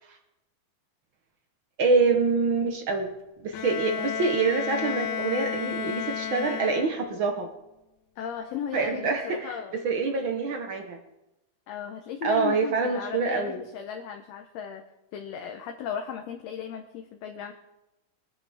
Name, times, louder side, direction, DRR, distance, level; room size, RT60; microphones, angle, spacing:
voice 1, 1.8-3.1 3.4-7.5 8.7-11.0 12.2-13.6, right 4 dB, 60° right, 4 dB, 1.3 m, -26 dB
Bowed string instrument, 3.5-7.3, left 8 dB, 85° left, 2.1 m, -32 dB
voice 2, 3.8-4.2 6.3-6.7 8.2-9.8 10.3-10.4 11.7-14.8 15.1-17.5, left 7 dB, 70° left, 4 dB, 1.8 m, -36 dB
23.5 x 9.5 x 3.5 m, 0.94 s
omnidirectional pair, 3.5 m